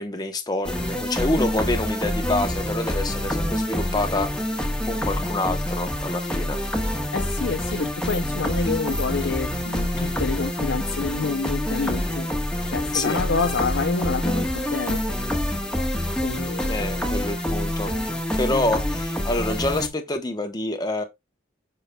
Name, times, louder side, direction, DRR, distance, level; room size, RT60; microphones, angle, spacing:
voice 1, 0.0-6.6 12.9-13.2 16.7-17.9 18.4-21.0, left 2 dB, 20° left, 0.9 m, -27 dB
sound 1, 0.6-19.9, left 1 dB, 5° left, 1.3 m, -26 dB
voice 2, 7.1-12.3 12.7-15.0 16.2-16.9, left 4 dB, 70° left, 0.6 m, -28 dB
7.9 x 5.7 x 2.3 m
head